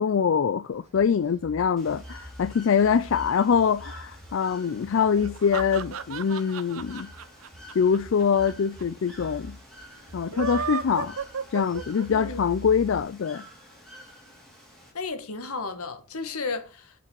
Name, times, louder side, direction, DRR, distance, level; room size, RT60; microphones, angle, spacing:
voice 1, 0.0-7.1 7.8-9.6 10.1-11.2 11.5-13.4, left 6 dB, 60° left, 0.4 m, -24 dB
sound 1, 0.7-13.0, equal, 30° right, 1.9 m, -45 dB
Bird / Water, 1.8-14.9, left 1 dB, ahead, 2.7 m, -50 dB
sound 2, 5.2-8.5 8.8-8.9 9.1-9.2 10.2-12.3, right 5 dB, 70° right, 0.7 m, -33 dB
voice 2, 12.1-12.4 14.9-16.9, left 4 dB, 80° left, 1.5 m, -33 dB
7.1 x 5.8 x 6.0 m
head